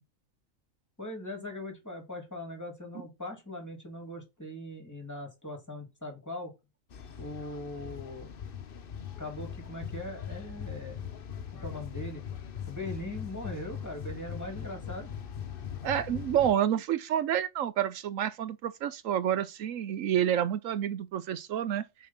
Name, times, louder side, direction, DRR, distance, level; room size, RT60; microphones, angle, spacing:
voice 1, 1.0-6.5 7.2-8.3 9.2-11.1 11.6-12.2 12.7-15.1, left 1 dB, 15° left, 2.8 m, -40 dB
sound 1, 6.9-16.5, left 8 dB, 50° left, 0.9 m, -40 dB
voice 2, 15.8-21.8, right 10 dB, 80° right, 1.1 m, -29 dB
7.1 x 4.5 x 5.8 m
omnidirectional pair, 1.4 m